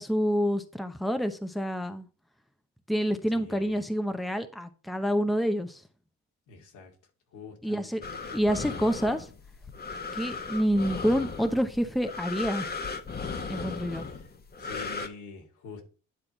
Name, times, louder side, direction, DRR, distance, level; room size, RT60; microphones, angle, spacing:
voice 1, 0.0-2.1 2.9-5.8 7.6-8.0 8.3-9.3 10.1-12.7 13.5-14.1, equal, ahead, 0.8 m, -28 dB
voice 2, 3.3-3.8 6.5-6.9 7.3-7.9 8.3-8.4 14.6-15.8, left 5 dB, 90° left, 2.4 m, -45 dB
sound 1, 8.0-15.1, left 4 dB, 30° left, 1.2 m, -37 dB
10.0 x 3.7 x 4.3 m
cardioid pair, 90°, 30 cm